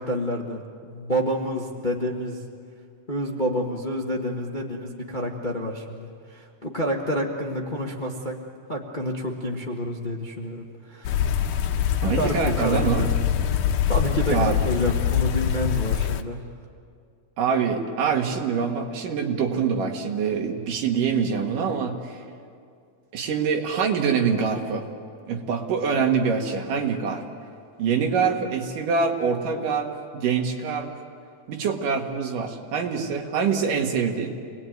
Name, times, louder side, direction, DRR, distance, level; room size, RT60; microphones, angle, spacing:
voice 1, 0.0-2.4 3.1-8.4 8.7-11.2 12.1-13.1 13.9-16.5, equal, 30° left, 0 dB, 0.8 m, -28 dB
sound 1, 11.0-16.2, left 9 dB, 75° left, 2.3 m, -24 dB
voice 2, 12.0-13.1 14.3-14.5 17.4-22.2 23.1-24.8 25.3-27.2 27.8-30.9 31.5-34.3, right 6 dB, 80° right, 3 dB, 3.5 m, -25 dB
27.5 x 20.0 x 9.3 m, 2.3 s
omnidirectional pair, 3.7 m